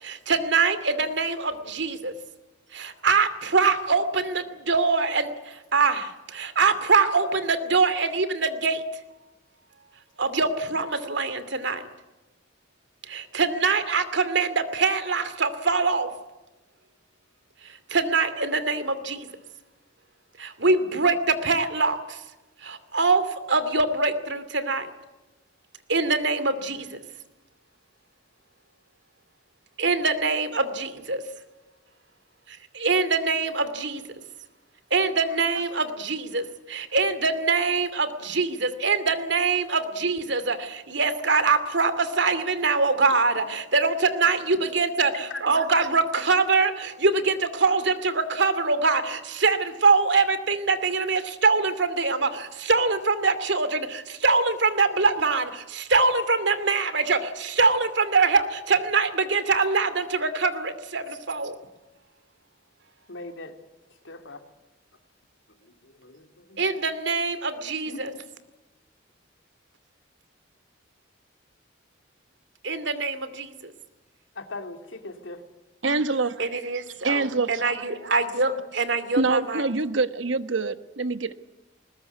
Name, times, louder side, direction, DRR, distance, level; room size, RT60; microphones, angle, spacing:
voice 1, 0.0-2.1 2.7-8.8 10.2-11.8 13.1-16.1 17.9-19.3 20.4-22.2 22.6-24.9 25.9-27.0 29.8-31.2 32.5-34.0 34.9-45.1 45.4-61.5 66.6-68.1 72.6-73.7 76.4-79.6, right 4 dB, 65° right, 2.6 m, -24 dB
voice 2, 63.1-63.5 64.0-64.4 65.6-66.6 67.8-68.0 74.3-75.4, left 2 dB, 85° left, 3.1 m, -39 dB
voice 3, 75.8-76.3 77.0-77.6 79.2-81.3, right 3 dB, 85° right, 1.3 m, -25 dB
20.5 x 20.5 x 9.6 m
head